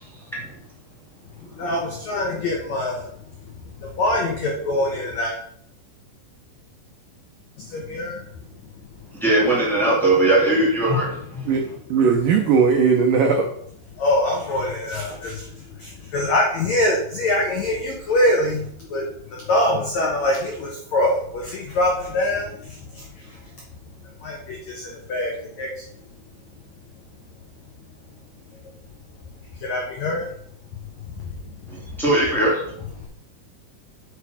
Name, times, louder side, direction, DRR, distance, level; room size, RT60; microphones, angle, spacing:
voice 1, 1.5-3.0 3.8-5.4 7.6-8.3 14.0-23.4 24.2-25.8 29.6-30.3 31.2-31.7, left 1 dB, 85° left, -1 dB, 1.5 m, -24 dB
voice 2, 9.1-11.5 31.7-32.7, right 1 dB, ahead, -6 dB, 0.9 m, -20 dB
voice 3, 11.9-13.5, right 5 dB, 85° right, 3 dB, 1.9 m, -18 dB
6.6 x 6.5 x 4.9 m, 0.68 s
omnidirectional pair, 5.1 m